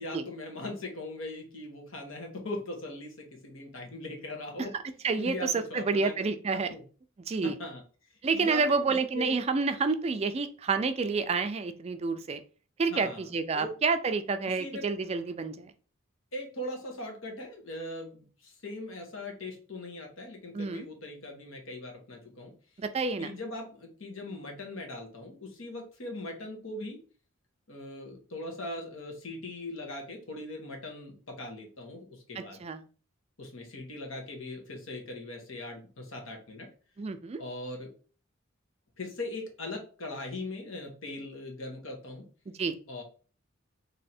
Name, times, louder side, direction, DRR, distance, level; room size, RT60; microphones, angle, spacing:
voice 1, 0.0-4.7 5.2-6.1 6.6-6.8 7.4-7.8 8.3-9.4 12.9-13.3 13.5-13.8 14.5-14.9 16.3-22.5 23.2-27.0 27.7-32.6 33.4-36.7 37.4-37.9 39.0-42.3 42.9-43.0, left 2 dB, 75° left, 2 dB, 1.2 m, -40 dB
voice 2, 5.0-6.7 7.3-7.5 8.2-12.4 12.8-15.7 20.5-20.9 22.8-23.3 32.4-32.8 37.0-37.4 42.6-42.8, right 4 dB, 30° right, 9 dB, 0.3 m, -29 dB
3.3 x 2.7 x 4.2 m, 0.38 s
head